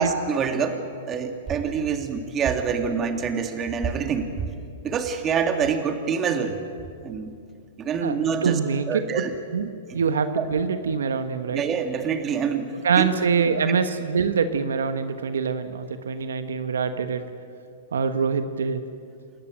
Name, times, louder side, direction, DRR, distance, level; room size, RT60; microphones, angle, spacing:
voice 1, 0.0-4.3 4.8-6.6 7.0-7.4 7.8-8.6 8.9-9.3 9.9-10.0 10.3-10.5 11.5-13.1 13.7-13.8, right 6 dB, 25° right, 5 dB, 2.4 m, -26 dB
voice 2, 8.4-9.2 9.5-11.6 12.8-17.2 17.9-18.8, right 6 dB, 85° right, 9 dB, 1.3 m, -24 dB
28.0 x 14.0 x 9.0 m, 2.4 s
hypercardioid pair, 120°, 0 cm